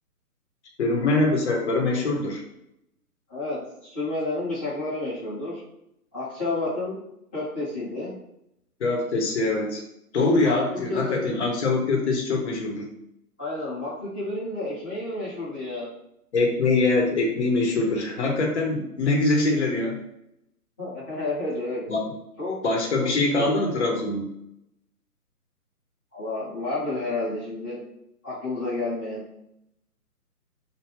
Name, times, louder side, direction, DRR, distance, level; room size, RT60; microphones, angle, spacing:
voice 1, 0.8-2.4 8.8-9.8 10.1-12.9 16.3-20.0 21.9-22.0 22.6-24.3, left 2 dB, 45° left, 1 dB, 0.9 m, -23 dB
voice 2, 3.3-5.6 6.1-6.9 7.3-8.1 10.4-10.6 10.9-11.3 13.4-15.9 20.8-21.8 22.4-22.6 23.0-23.5 26.1-27.8 28.2-29.2, left 2 dB, 5° left, -17 dB, 0.6 m, -30 dB
3.1 x 2.2 x 3.3 m, 0.80 s
figure-of-eight pair, 145°, 46 cm